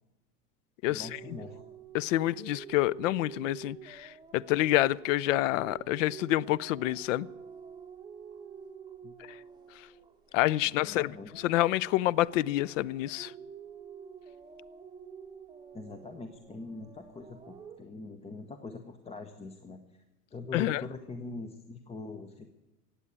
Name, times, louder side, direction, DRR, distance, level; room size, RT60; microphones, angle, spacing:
voice 1, 0.9-1.6 9.0-9.1 10.8-11.3 15.7-20.0 20.3-22.5, left 3 dB, 15° left, 0.8 m, -43 dB
sound 1, 1.0-10.8 11.1-17.8, right 6 dB, 10° right, 1.9 m, -48 dB
voice 2, 1.9-7.3 10.3-11.1 11.4-13.3 20.5-20.8, left 16 dB, 55° left, 0.5 m, -27 dB
16.5 x 8.3 x 8.7 m
hypercardioid pair, 115°, 47 cm